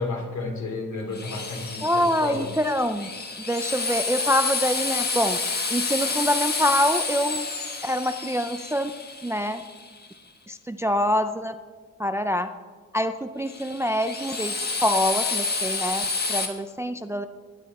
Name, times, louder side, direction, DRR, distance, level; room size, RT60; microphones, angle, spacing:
voice 1, 0.0-2.5, left 3 dB, 65° left, 1 dB, 3.1 m, -32 dB
Drill, 1.1-10.1 13.5-16.5, left 4 dB, 30° left, 1.4 m, -29 dB
voice 2, 1.8-3.1 3.5-5.4 5.7-7.5 7.8-8.9 9.2-9.6 10.5-11.5 12.0-12.5 12.9-17.3, equal, 10° right, 9 dB, 0.4 m, -25 dB
20.5 x 9.9 x 4.1 m, 1.5 s
wide cardioid pair, 165°, 31 cm